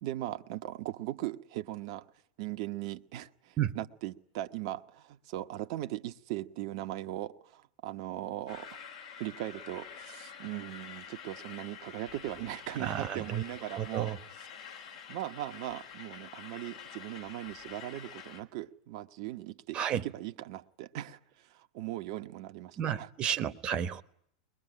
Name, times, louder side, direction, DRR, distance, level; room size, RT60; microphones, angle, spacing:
voice 1, 0.0-2.1 2.4-8.8 9.2-14.2 15.1-23.1, right 14 dB, 50° right, 1.0 m, -39 dB
sound 1, 8.5-18.4, left 7 dB, 65° left, 3.3 m, -48 dB
voice 2, 12.8-13.4 13.8-14.2 19.7-20.1 22.8-24.0, right 9 dB, 30° right, 1.1 m, -32 dB
22.5 x 20.5 x 9.9 m
figure-of-eight pair, 90°, 3 cm